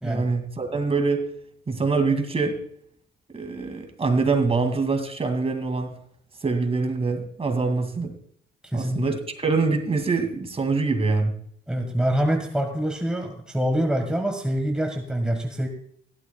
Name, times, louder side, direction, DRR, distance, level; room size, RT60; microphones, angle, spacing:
voice 1, 0.0-1.3 1.7-2.6 3.3-5.9 6.4-8.1 8.7-11.3, right 4 dB, 30° right, 6 dB, 2.4 m, -24 dB
voice 2, 8.6-9.0 11.7-15.7, right 1 dB, 5° right, 4 dB, 1.6 m, -25 dB
16.0 x 12.0 x 2.3 m, 0.64 s
cardioid pair, 90°, 20 cm